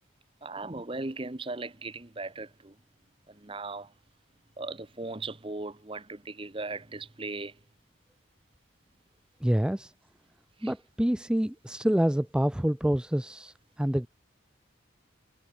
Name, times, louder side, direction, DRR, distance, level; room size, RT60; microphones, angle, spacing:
voice 1, 0.4-2.7 3.3-3.9 4.6-7.6 10.6-10.7, right 3 dB, 25° right, 1.0 m, -38 dB
voice 2, 9.4-9.9 10.6-14.1, equal, 5° right, 0.3 m, -27 dB
head